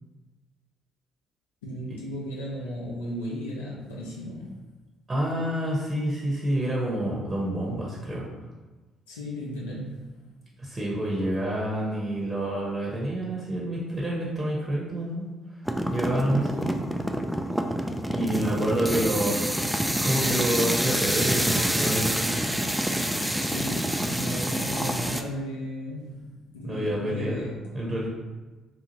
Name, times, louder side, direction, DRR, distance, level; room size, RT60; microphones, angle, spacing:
voice 1, 1.6-4.5 9.1-10.0 16.4-16.8 23.4-28.0, equal, 85° left, -5 dB, 0.5 m, -35 dB
voice 2, 5.1-8.3 10.6-15.3 15.9-16.7 18.1-22.4 26.6-28.1, right 1 dB, 35° right, -5 dB, 0.9 m, -28 dB
sound 1, 15.7-25.2, equal, 5° right, 0.3 m, -27 dB
2.8 x 2.4 x 2.9 m, 1.2 s
hypercardioid pair, 50°, 0 cm